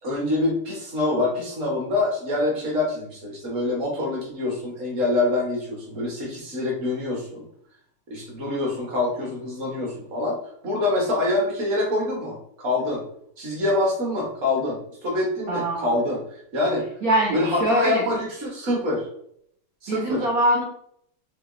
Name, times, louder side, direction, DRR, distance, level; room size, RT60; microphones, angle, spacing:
voice 1, 0.0-7.4 8.1-10.4 10.6-13.0 13.4-16.8 17.3-19.1 19.8-20.3, left 2 dB, 40° right, -1 dB, 1.4 m, -25 dB
voice 2, 15.5-15.9 17.0-18.0 19.9-20.6, right 1 dB, 85° right, -1 dB, 0.7 m, -23 dB
4.9 x 3.1 x 2.6 m, 0.69 s
omnidirectional pair, 2.4 m